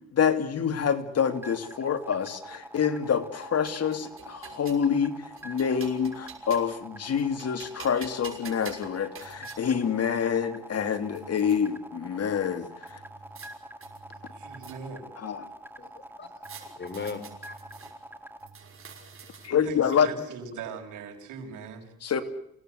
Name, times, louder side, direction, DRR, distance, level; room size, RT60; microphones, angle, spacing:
voice 1, 0.1-13.0 15.2-15.4 19.4-20.1 22.0-22.2, left 7 dB, 55° left, 9 dB, 3.0 m, -27 dB
sound 1, 1.2-18.5, right 1 dB, 5° right, 2.8 m, -45 dB
sound 2, 3.1-4.9 5.4-6.8 7.2-9.6 10.4-10.5 10.7-11.6 12.9-13.5 13.8-15.1 16.4-17.9 18.4-19.7, right 6 dB, 45° right, 6.3 m, -47 dB
voice 2, 14.3-15.0 19.7-21.9, right 6 dB, 85° right, 2 dB, 6.3 m, -40 dB
voice 3, 15.8-17.6 18.9-19.4, left 4 dB, 35° left, 13 dB, 3.7 m, -40 dB
28.0 x 18.0 x 8.1 m, 0.76 s
cardioid pair, 90°, 30 cm